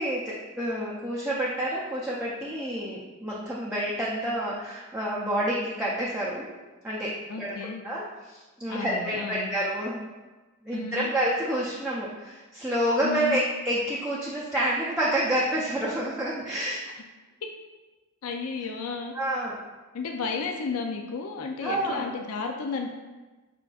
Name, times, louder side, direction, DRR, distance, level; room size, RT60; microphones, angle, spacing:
voice 1, 0.0-6.5 6.8-7.5 7.8-10.0 10.6-16.8 19.1-19.6 21.6-22.1, right 1 dB, 5° right, -7 dB, 0.5 m, -28 dB
voice 2, 7.3-7.8 8.7-9.5 10.7-11.1 13.0-13.4 16.9-17.0 18.2-19.1 19.9-22.9, left 4 dB, 75° left, 3 dB, 0.4 m, -33 dB
5.8 x 3.8 x 2.4 m, 1.2 s
head